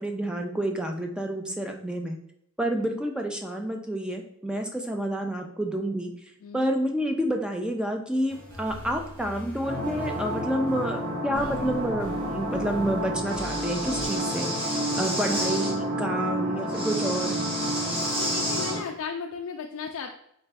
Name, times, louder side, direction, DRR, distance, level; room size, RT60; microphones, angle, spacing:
voice 1, 0.0-2.2 2.6-6.1 6.5-17.4, right 1 dB, 5° right, 3 dB, 0.4 m, -29 dB
voice 2, 6.4-6.7 11.3-11.6 18.2-20.2, left 6 dB, 65° left, 2 dB, 0.4 m, -36 dB
sound 1, 8.3-14.1, equal, 80° right, 1.6 m, -43 dB
sound 2, 9.6-18.8, right 1 dB, 50° right, 1.6 m, -30 dB
Breathing, 13.2-15.7 16.7-18.8, equal, 20° right, 1.7 m, -32 dB
3.9 x 3.2 x 3.4 m, 0.73 s
head